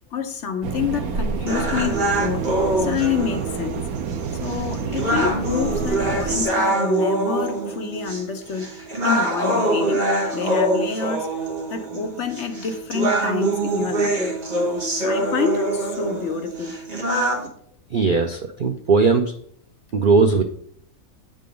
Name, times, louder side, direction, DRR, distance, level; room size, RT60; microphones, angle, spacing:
voice 1, 0.1-2.4 2.8-3.8 4.3-8.7 9.0-11.3 11.7-14.2 15.0-16.8, left 6 dB, 60° left, 1.0 m, -27 dB
sound 1, 0.6-6.5, right 5 dB, 85° right, 1.1 m, -28 dB
sound 2, 1.5-17.5, right 1 dB, 35° right, 1.5 m, -24 dB
voice 2, 17.9-19.3 19.9-20.4, right 4 dB, 65° right, 0.5 m, -18 dB
7.5 x 3.8 x 5.0 m
omnidirectional pair, 1.5 m